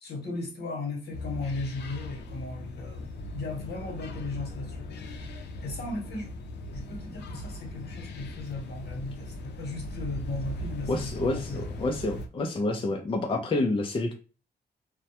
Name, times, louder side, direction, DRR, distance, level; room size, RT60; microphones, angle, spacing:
voice 1, 0.0-4.9 5.6-6.3 6.7-11.7, left 2 dB, 70° left, 1 dB, 0.9 m, -36 dB
sound 1, 1.1-12.3, left 1 dB, 90° left, 0.4 m, -39 dB
voice 2, 10.9-14.1, left 2 dB, 30° left, 4 dB, 0.4 m, -28 dB
2.2 x 2.1 x 2.7 m, 0.34 s
cardioid pair, 90°, 17 cm